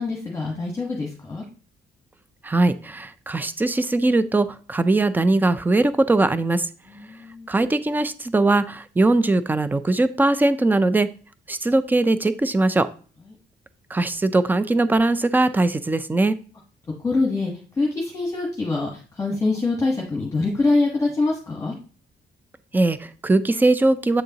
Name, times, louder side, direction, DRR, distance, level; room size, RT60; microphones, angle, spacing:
voice 1, 0.0-1.4 6.9-7.5 17.0-17.5 17.8-21.8, left 3 dB, 15° left, -2 dB, 1.3 m, -24 dB
voice 2, 2.4-6.7 7.5-11.1 11.5-12.9 13.9-16.4 22.7-24.2, right 2 dB, 10° right, 13 dB, 0.4 m, -20 dB
7.9 x 6.5 x 2.8 m, 0.39 s
cardioid pair, 155°, 19 cm